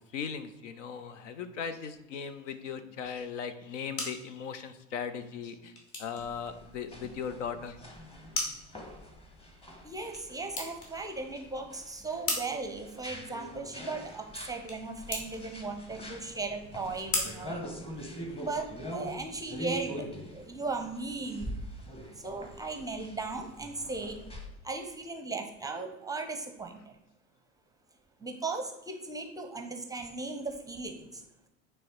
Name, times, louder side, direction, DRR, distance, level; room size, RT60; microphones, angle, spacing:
voice 1, 0.1-7.8, left 6 dB, 65° left, 11 dB, 0.7 m, -38 dB
sound 1, 3.6-18.5, left 2 dB, 45° left, 2.7 m, -41 dB
sound 2, 6.2-24.5, equal, 15° left, 1.2 m, -44 dB
voice 2, 9.8-17.6 18.2-21.5 22.2-24.2 24.6-26.8 28.2-31.2, right 3 dB, 10° right, 5 dB, 0.7 m, -37 dB
9.2 x 3.3 x 4.5 m, 0.90 s
figure-of-eight pair, 80°, 40 cm